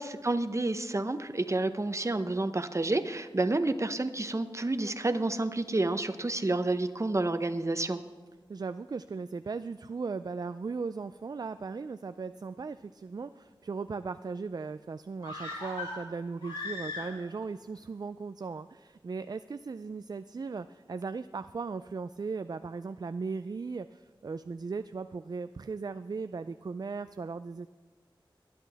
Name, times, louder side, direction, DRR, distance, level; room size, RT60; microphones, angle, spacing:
voice 1, 0.0-8.0, right 2 dB, 35° right, 10 dB, 0.8 m, -29 dB
voice 2, 8.5-27.7, right 4 dB, 50° right, 11 dB, 0.3 m, -37 dB
sound 1, 15.2-17.5 17.7-17.8, left 2 dB, 85° left, 3.6 m, -39 dB
20.5 x 10.5 x 3.5 m, 1.3 s
wide cardioid pair, 65°, 9 cm